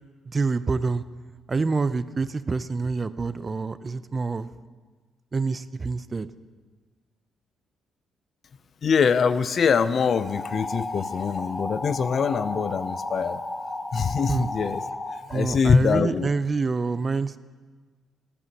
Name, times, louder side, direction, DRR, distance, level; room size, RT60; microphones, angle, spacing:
voice 1, 0.2-1.0 1.5-4.5 5.3-6.3 14.3-14.5 15.3-17.4, right 4 dB, 30° right, 15 dB, 0.4 m, -26 dB
voice 2, 8.8-13.4 13.9-14.8 15.3-16.3, left 6 dB, 50° left, 14 dB, 0.4 m, -23 dB
sound 1, 10.2-15.2, left 2 dB, 20° left, 0.7 m, -33 dB
15.0 x 12.0 x 2.8 m, 1.4 s
cardioid pair, 90°, 0 cm